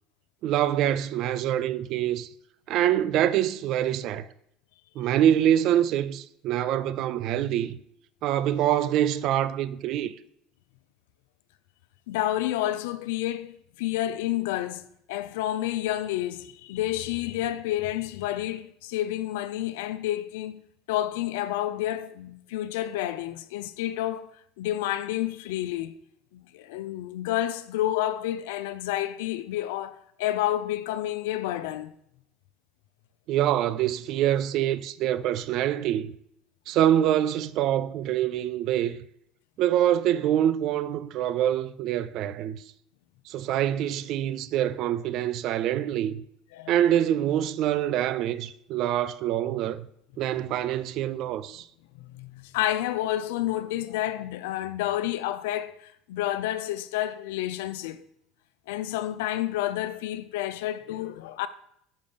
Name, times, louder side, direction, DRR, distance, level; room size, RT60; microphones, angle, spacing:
voice 1, 0.4-2.3 2.7-4.3 5.0-7.8 8.2-10.1 33.3-36.1 36.7-39.0 39.6-42.6 43.3-46.2 46.7-49.9 50.2-51.6, right 11 dB, 60° right, 0.4 m, -25 dB
voice 2, 12.1-14.8 15.1-20.6 20.9-24.3 24.6-26.0 26.3-32.0 46.5-46.8 52.0-58.0 58.7-61.5, left 13 dB, 80° left, 0.4 m, -30 dB
5.1 x 5.1 x 5.2 m
hypercardioid pair, 80°, 0 cm